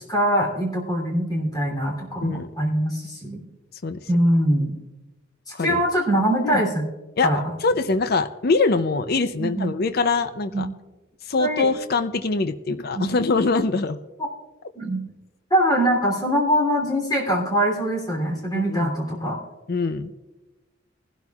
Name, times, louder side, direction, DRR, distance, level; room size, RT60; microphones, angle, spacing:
voice 1, 0.0-3.4 4.1-4.8 5.5-6.9 7.2-7.4 9.4-9.7 10.5-10.6 11.4-11.7 12.9-13.0 14.7-15.0 15.5-19.4, equal, 20° left, -1 dB, 2.9 m, -23 dB
voice 2, 7.6-10.7 11.3-14.0 18.5-18.9 19.7-20.1, left 3 dB, 50° left, 10 dB, 0.5 m, -23 dB
21.5 x 12.0 x 2.4 m, 1.1 s
head